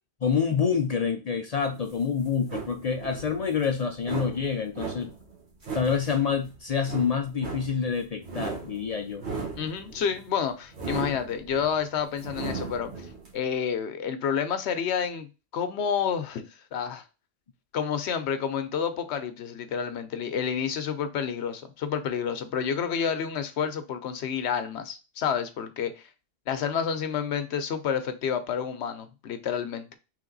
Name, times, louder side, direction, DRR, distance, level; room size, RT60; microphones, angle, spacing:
voice 1, 0.2-5.1 5.7-9.2, left 6 dB, 50° left, 0.5 m, -27 dB
sound 1, 1.6-13.3, right 4 dB, 80° right, 1.5 m, -38 dB
voice 2, 9.6-12.9 13.3-17.0 17.7-25.9 26.5-29.9, left 7 dB, 85° left, 0.9 m, -29 dB
3.5 x 3.2 x 3.8 m
omnidirectional pair, 1.1 m